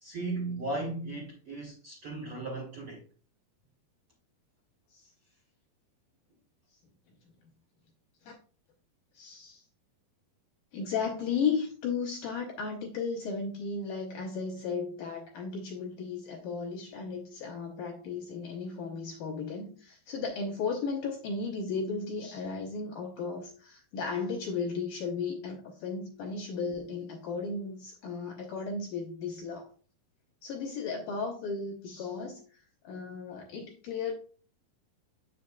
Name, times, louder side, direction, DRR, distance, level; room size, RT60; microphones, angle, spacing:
voice 1, 0.0-3.0, right 2 dB, 60° right, 1.6 m, -36 dB
voice 2, 9.1-9.7 10.7-29.7 30.4-34.1, left 5 dB, 70° left, 2.1 m, -35 dB
8.1 x 6.4 x 2.3 m
omnidirectional pair, 4.7 m